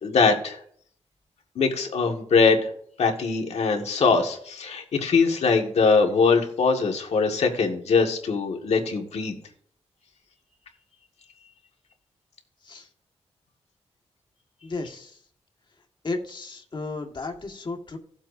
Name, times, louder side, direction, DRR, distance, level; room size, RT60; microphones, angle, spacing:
voice 1, 0.0-0.6 1.6-2.7 3.0-9.3, left 4 dB, 75° left, 2 dB, 1.8 m, -22 dB
voice 2, 14.6-15.2 16.0-18.0, left 3 dB, 45° left, 3 dB, 1.7 m, -34 dB
16.5 x 7.4 x 2.7 m, 0.63 s
cardioid pair, 75°, 11 cm